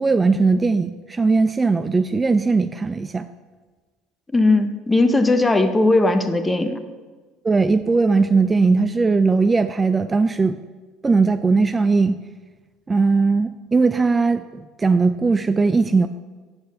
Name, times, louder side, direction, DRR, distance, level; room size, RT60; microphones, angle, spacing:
voice 1, 0.0-3.3 7.4-10.6 11.0-12.2 12.9-16.1, right 4 dB, 20° right, 10 dB, 0.3 m, -19 dB
voice 2, 4.3-6.8, left 2 dB, 15° left, 9 dB, 0.9 m, -18 dB
8.3 x 4.7 x 6.5 m, 1.3 s
supercardioid pair, 85°, 0 cm